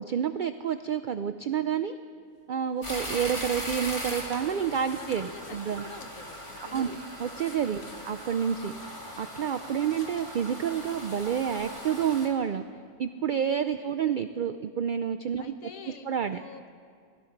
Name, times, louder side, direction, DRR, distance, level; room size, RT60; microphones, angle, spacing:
voice 1, 0.0-2.0 2.5-5.8 6.7-8.7 9.2-12.6 13.0-15.5 16.1-16.4, right 8 dB, 80° right, 9 dB, 0.4 m, -29 dB
sound 1, 2.3-12.0 12.2-12.3, left 4 dB, 65° left, 1.4 m, -54 dB
sound 2, 2.8-12.3, equal, 20° left, 2.4 m, -39 dB
voice 2, 5.0-7.1 7.8-8.1 13.7-14.1 15.4-16.7, left 5 dB, 80° left, 7 dB, 1.4 m, -47 dB
19.0 x 12.5 x 5.8 m, 2.2 s
omnidirectional pair, 1.4 m